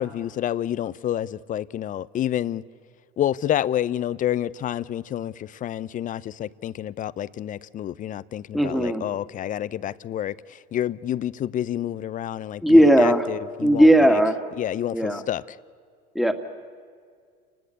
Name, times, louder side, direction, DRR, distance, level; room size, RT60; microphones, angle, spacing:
voice 1, 0.0-2.6 3.2-14.2 14.6-15.4, left 11 dB, 40° left, 0.7 m, -29 dB
voice 2, 8.5-9.1 12.6-13.3 13.6-14.4 14.9-15.2 16.1-16.3, equal, ahead, 2.3 m, -17 dB
29.5 x 19.5 x 8.1 m
supercardioid pair, 90°, 20 cm